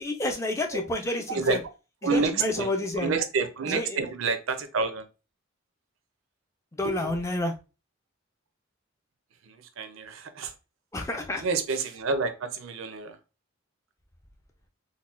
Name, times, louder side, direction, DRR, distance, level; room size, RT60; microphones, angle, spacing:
voice 1, 0.0-1.6 2.1-3.1 3.7-4.0 6.7-7.5 10.9-11.4, left 1 dB, 15° left, 0.4 m, -29 dB
voice 2, 1.3-1.6 2.0-2.7 3.0-5.1 6.8-7.1 9.4-10.5 11.4-13.2, right 4 dB, 75° right, 0.5 m, -29 dB
3.9 x 2.1 x 2.4 m
head